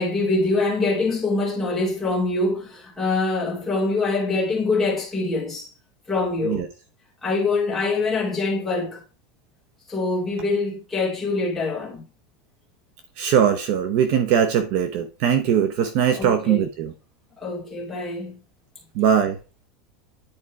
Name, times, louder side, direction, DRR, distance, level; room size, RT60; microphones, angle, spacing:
voice 1, 0.0-5.7 6.1-6.7 7.2-9.0 9.9-12.0 16.1-16.7 17.4-18.4, left 3 dB, 5° left, 3.0 m, -24 dB
voice 2, 13.2-16.9 19.0-19.4, right 8 dB, 45° right, 0.8 m, -20 dB
9.9 x 4.4 x 4.7 m
supercardioid pair, 180°, 4 cm